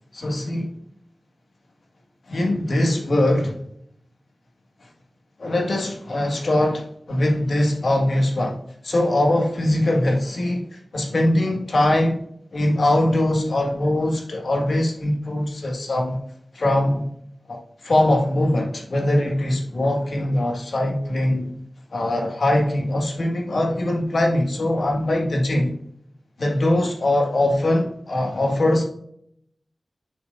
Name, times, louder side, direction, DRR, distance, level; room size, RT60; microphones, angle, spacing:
voice 1, 0.1-0.7 2.3-3.6 5.4-12.2 12.5-16.2 16.5-17.1 17.5-17.6 17.8-21.5 21.9-25.7 26.4-28.8, left 1 dB, 65° left, 1 dB, 1.7 m, -22 dB
7.1 x 6.3 x 2.5 m, 0.68 s
wide cardioid pair, 90°, 0 cm